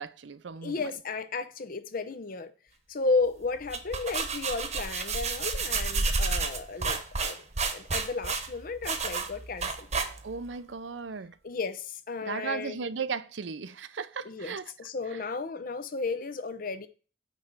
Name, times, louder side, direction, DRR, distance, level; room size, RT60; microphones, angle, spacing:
voice 1, 0.0-0.8 10.2-11.4 12.2-14.7 15.1-15.2, right 5 dB, 85° right, 0.6 m, -36 dB
voice 2, 0.6-2.5 2.9-7.4 7.7-9.9 11.4-12.8 14.3-16.9, left 4 dB, 50° left, 0.7 m, -33 dB
sound 1, 3.5-10.5, right 4 dB, 40° right, 1.1 m, -30 dB
9.2 x 3.3 x 6.6 m
head